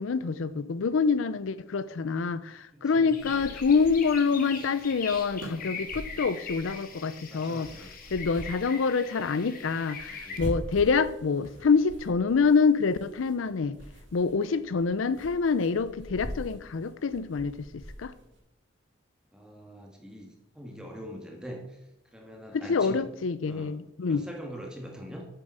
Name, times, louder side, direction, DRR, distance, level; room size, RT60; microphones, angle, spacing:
voice 1, 0.0-7.7 8.1-13.8 14.1-18.1 22.5-24.3, left 5 dB, 85° left, 15 dB, 0.5 m, -26 dB
voice 2, 2.7-3.6 5.8-6.0 7.3-8.1 10.1-10.5 19.3-20.3 20.5-21.8 22.1-23.1 23.5-25.3, equal, 5° right, 1 dB, 1.6 m, -44 dB
sound 1, 3.1-10.4, left 5 dB, 45° left, 1.5 m, -42 dB
sound 2, 3.2-18.4, equal, 70° right, 2.3 m, -44 dB
8.3 x 7.0 x 5.5 m, 0.85 s
head